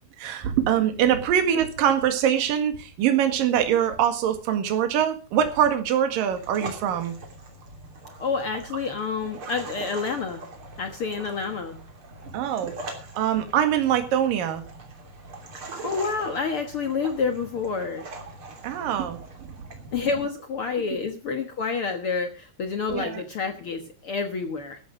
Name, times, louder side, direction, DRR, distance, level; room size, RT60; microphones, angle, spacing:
voice 1, 0.2-7.1 12.3-12.7 13.2-14.6 18.6-19.2 19.9-20.1 22.9-23.2, right 9 dB, 65° right, 7 dB, 3.4 m, -23 dB
sound 1, 6.3-20.2, right 2 dB, 35° right, 3.4 m, -42 dB
voice 2, 8.2-10.4 10.8-11.8 15.8-18.1 19.9-24.8, left 5 dB, 65° left, 6 dB, 1.3 m, -28 dB
14.0 x 11.5 x 5.1 m, 0.33 s
omnidirectional pair, 4.5 m